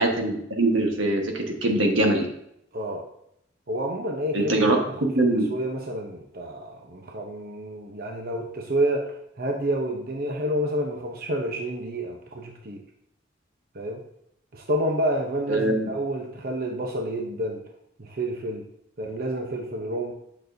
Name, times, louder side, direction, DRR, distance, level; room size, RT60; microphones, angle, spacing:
voice 1, 0.0-2.3 4.3-4.8 5.0-5.5 15.5-15.9, right 2 dB, 85° right, 2 dB, 1.4 m, -22 dB
voice 2, 2.7-3.0 3.7-5.1 5.5-12.8 13.7-14.0 14.5-17.6 18.0-18.6 19.0-20.1, right 1 dB, 50° right, 1 dB, 0.8 m, -29 dB
9.0 x 6.1 x 2.7 m, 0.75 s
head